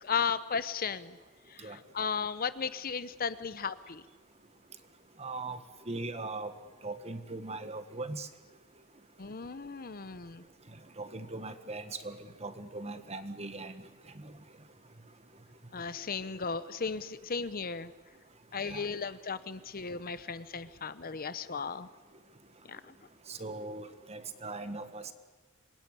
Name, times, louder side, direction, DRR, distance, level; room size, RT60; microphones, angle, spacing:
voice 1, 0.0-1.2 1.5-4.0 9.2-10.4 15.7-17.9 18.5-21.9 22.7-22.9, left 6 dB, 45° left, 14 dB, 0.8 m, -35 dB
voice 2, 5.2-5.6 5.9-6.5 6.8-8.3 11.0-13.7 18.6-18.8 23.3-25.1, right 3 dB, 30° right, 10 dB, 1.6 m, -39 dB
26.0 x 22.0 x 9.9 m, 1.2 s
head